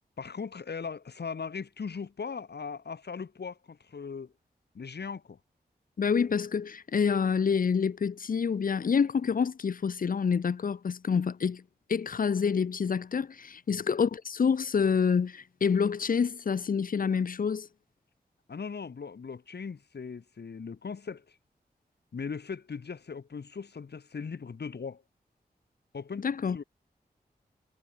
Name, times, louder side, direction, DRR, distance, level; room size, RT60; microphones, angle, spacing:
voice 1, 0.2-4.3 4.7-5.4 13.7-13.8 18.5-21.4 22.1-25.0 25.9-26.3 26.5-26.6, left 5 dB, 75° left, 2.6 m, -39 dB
voice 2, 6.0-11.6 11.9-17.7 26.2-26.6, left 6 dB, 55° left, 0.6 m, -27 dB
cardioid pair, 45°, 17 cm